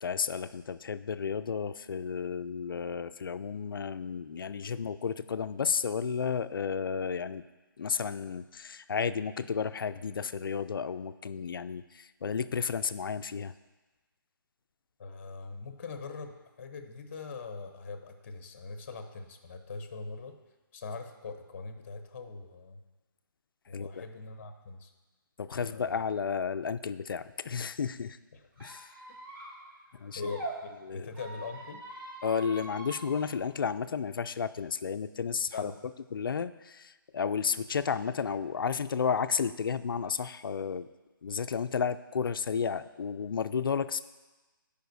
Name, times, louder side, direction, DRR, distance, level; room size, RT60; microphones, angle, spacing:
voice 1, 0.0-7.4 7.8-13.5 23.7-24.0 25.4-28.2 28.6-28.9 29.9-30.3 30.8-31.1 32.2-35.7 36.1-40.9 41.2-44.0, left 6 dB, 70° left, 12 dB, 0.4 m, -32 dB
voice 2, 15.0-20.3 20.7-22.8 23.7-24.9 25.5-26.0 30.1-31.8 35.5-35.8, left 4 dB, 35° left, 7 dB, 0.8 m, -42 dB
Squeak, 28.6-30.5 31.1-33.2, right 2 dB, 70° right, 2.4 m, -43 dB
14.5 x 5.1 x 2.7 m, 1.2 s
hypercardioid pair, 165°, 12 cm